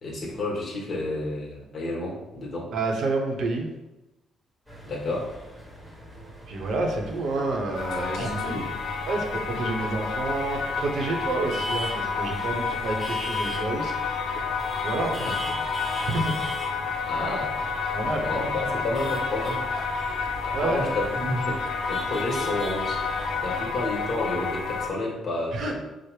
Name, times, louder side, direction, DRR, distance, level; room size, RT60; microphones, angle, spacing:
voice 1, 0.0-2.7 4.9-5.3 8.2-8.7 15.2-15.5 17.1-17.5 18.2-19.6 20.4-21.6 21.9-23.0 23.4-25.7, left 2 dB, 45° left, -1 dB, 1.2 m, -30 dB
voice 2, 2.7-3.7 6.5-8.6 9.1-13.9 14.8-15.3 16.0-16.3 17.9-18.3 20.5-20.8 25.5-25.7, right 2 dB, 65° right, 1 dB, 0.8 m, -29 dB
sound 1, 4.7-23.5, equal, 5° right, 1.1 m, -41 dB
sound 2, 7.7-24.9, left 4 dB, 65° left, 0.6 m, -30 dB
4.9 x 2.0 x 4.6 m, 1.0 s
cardioid pair, 110°, 0 cm